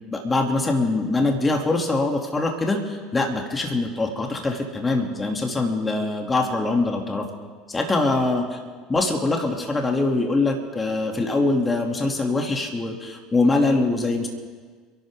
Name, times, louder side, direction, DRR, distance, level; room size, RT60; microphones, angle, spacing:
voice 1, 0.1-7.3 7.7-8.4 8.9-14.3, left 2 dB, 20° left, 2 dB, 2.9 m, -23 dB
29.5 x 12.0 x 3.8 m, 1.5 s
hypercardioid pair, 70°, 0 cm